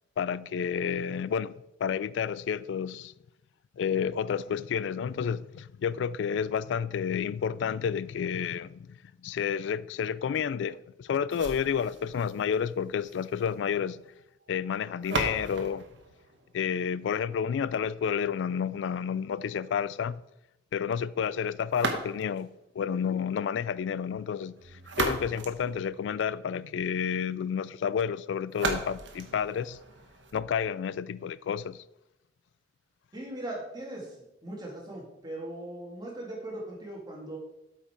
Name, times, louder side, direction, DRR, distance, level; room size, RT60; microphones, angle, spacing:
voice 1, 0.2-1.5 1.8-3.1 3.8-14.0 14.5-15.8 16.5-20.2 20.7-22.5 22.8-24.5 25.0-29.8 30.3-31.8, left 7 dB, 75° left, 0.3 m, -30 dB
sound 1, 11.3-17.3 21.7-22.5 24.6-26.5 28.5-30.5, right 3 dB, 80° right, 1.2 m, -37 dB
voice 2, 33.1-34.1 34.4-37.4, right 1 dB, 25° right, 2.3 m, -39 dB
8.3 x 5.6 x 4.5 m
head